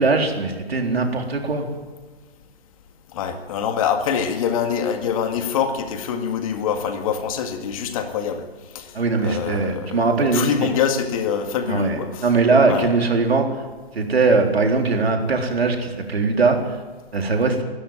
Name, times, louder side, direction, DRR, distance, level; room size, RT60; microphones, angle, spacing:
voice 1, 0.0-1.7 8.9-10.5 11.7-13.6 13.9-16.6 17.1-17.6, right 3 dB, 75° right, 3 dB, 4.0 m, -20 dB
voice 2, 3.1-8.4 8.7-8.9 9.2-12.3 12.7-12.9, left 7 dB, 35° left, 6 dB, 2.1 m, -25 dB
22.0 x 13.0 x 9.1 m, 1.3 s
hypercardioid pair, 145°, 31 cm